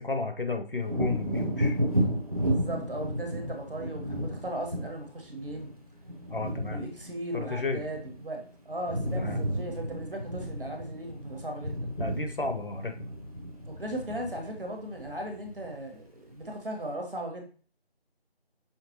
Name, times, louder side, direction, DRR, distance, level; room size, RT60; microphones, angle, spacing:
voice 1, 0.0-1.8 6.3-6.8 7.3-7.8 9.2-9.4 12.0-13.1, left 3 dB, 60° left, 6 dB, 0.7 m, -32 dB
Wind / Thunder, 0.8-8.4 8.7-15.9 16.4-16.5, equal, 35° right, 0.8 m, -33 dB
voice 2, 2.4-5.7 6.7-11.9 13.6-17.4, right 1 dB, 60° right, 2 dB, 1.2 m, -37 dB
5.8 x 3.2 x 2.8 m, 0.40 s
figure-of-eight pair, 175°, 31 cm